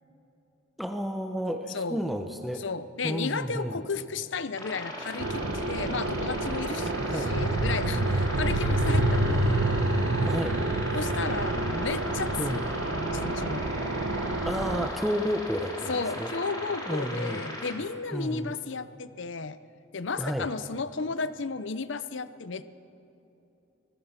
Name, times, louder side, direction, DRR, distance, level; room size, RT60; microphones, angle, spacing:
voice 1, 0.8-2.6 3.0-3.8 6.8-7.3 10.2-10.6 12.4-12.7 14.5-16.3 16.9-17.4 18.1-18.5 20.2-20.5, equal, ahead, 5 dB, 0.9 m, -31 dB
voice 2, 1.7-2.0 2.5-9.6 10.9-13.9 15.9-19.6 19.9-22.7, left 4 dB, 65° left, 14 dB, 0.7 m, -34 dB
sound 1, 4.6-17.7, left 1 dB, 20° left, 3.0 m, -38 dB
sound 2, 5.2-14.9, right 2 dB, 80° right, 1.2 m, -28 dB
24.5 x 20.5 x 5.9 m, 2.9 s
head